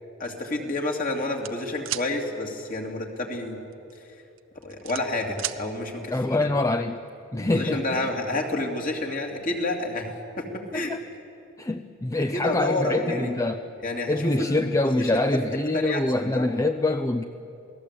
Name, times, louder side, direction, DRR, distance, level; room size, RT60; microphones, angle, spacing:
voice 1, 0.2-3.6 4.6-6.5 7.3-10.1 10.4-10.9 12.2-13.3 13.8-15.4 15.7-16.5, left 2 dB, 40° left, 1 dB, 2.9 m, -29 dB
sound 1, 1.4-2.1 3.7-4.0 4.4-5.6, right 13 dB, 70° right, 0.8 m, -32 dB
voice 2, 6.1-7.0 7.3-8.1 10.7-11.0 11.6-13.6 14.1-17.2, left 2 dB, 15° left, 8 dB, 0.5 m, -25 dB
28.0 x 19.0 x 8.4 m, 2.8 s
head